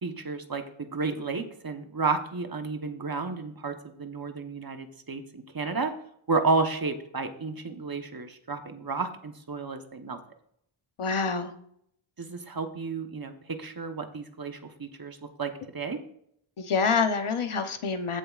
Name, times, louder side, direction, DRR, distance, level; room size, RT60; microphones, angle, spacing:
voice 1, 0.0-5.9 6.3-10.2 12.2-16.0, right 4 dB, 45° right, 6 dB, 1.1 m, -32 dB
voice 2, 11.0-11.5 16.6-18.2, left 5 dB, 85° left, 8 dB, 1.0 m, -26 dB
15.0 x 7.1 x 2.4 m, 0.70 s
wide cardioid pair, 75°, 49 cm